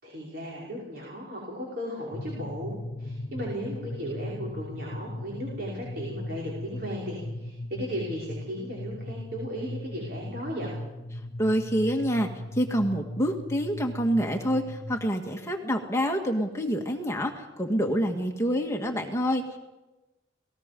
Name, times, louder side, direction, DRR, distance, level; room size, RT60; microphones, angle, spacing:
voice 1, 0.0-10.7, equal, 55° right, -4 dB, 5.7 m, -36 dB
sound 1, 2.1-15.1, left 1 dB, 55° left, 1.3 m, -38 dB
voice 2, 11.4-19.6, equal, 15° left, 3 dB, 1.7 m, -27 dB
28.5 x 19.5 x 5.3 m, 1.0 s
head